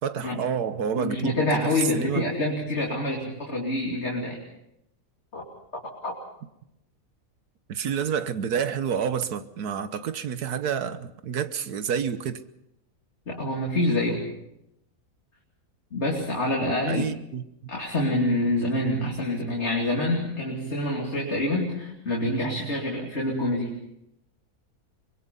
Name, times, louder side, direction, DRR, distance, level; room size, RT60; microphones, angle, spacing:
voice 1, 0.0-2.3 7.7-12.4 16.9-17.4, right 7 dB, 90° right, 1.6 m, -29 dB
voice 2, 0.9-4.4 5.3-5.4 5.7-6.1 13.3-14.3 15.9-17.1 17.7-23.8, left 1 dB, 45° left, 3.2 m, -26 dB
24.5 x 22.0 x 5.5 m
omnidirectional pair, 1.6 m